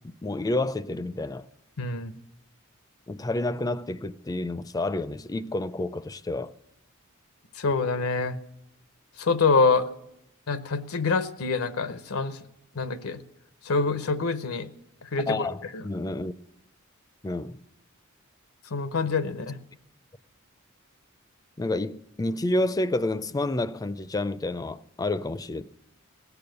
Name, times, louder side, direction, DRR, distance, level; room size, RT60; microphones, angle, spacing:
voice 1, 0.2-1.5 3.1-6.5 15.3-16.3 17.2-17.6 21.6-25.6, left 2 dB, 15° left, 0.4 m, -29 dB
voice 2, 1.8-2.1 7.6-8.4 9.2-9.9 10.5-12.4 12.7-13.2 13.6-14.7 15.1-15.5 15.7-15.8 18.7-19.6, left 4 dB, 90° left, 0.7 m, -25 dB
17.5 x 7.0 x 7.9 m
head